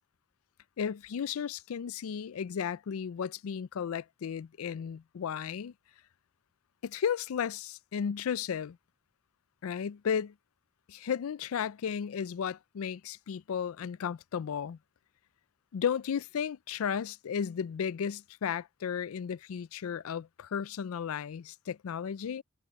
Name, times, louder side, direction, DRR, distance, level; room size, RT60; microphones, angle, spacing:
voice 1, 0.8-5.7 6.8-8.8 9.6-10.3 10.9-14.8 15.7-22.4, left 7 dB, 85° left, 0.4 m, -34 dB
head